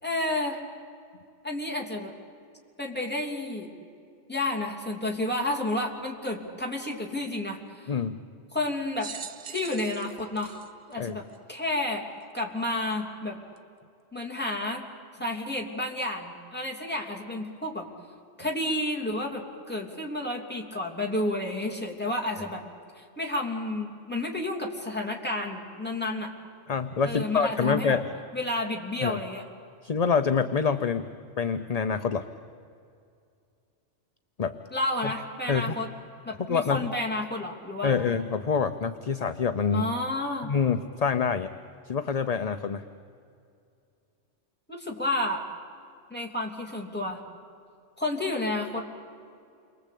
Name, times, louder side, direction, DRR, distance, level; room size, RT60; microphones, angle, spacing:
voice 1, 0.0-0.6 1.4-2.1 2.8-3.7 4.3-7.9 8.5-9.1 9.5-10.6 10.9-11.2 11.5-12.0 12.3-13.4 14.1-14.9 15.2-17.9 18.4-22.6 23.0-26.3 27.0-28.0 28.3-29.4 34.7-35.9 36.2-38.0 39.7-40.5 44.7-45.4 46.1-47.2 48.0-48.9, left 1 dB, 10° left, 0 dB, 3.0 m, -31 dB
voice 2, 7.9-8.2 11.0-11.2 26.7-28.1 29.0-29.2 29.8-31.1 31.4-32.3 34.4-34.6 35.0-35.1 35.5-35.8 36.5-36.9 37.8-39.9 40.4-41.5 41.8-42.8, left 6 dB, 40° left, 9 dB, 0.7 m, -26 dB
sound 1, 9.0-11.6 12.3-12.4 13.6-13.7, right 6 dB, 50° right, 1.0 m, -43 dB
29.5 x 23.5 x 8.4 m, 2.4 s
omnidirectional pair, 1.3 m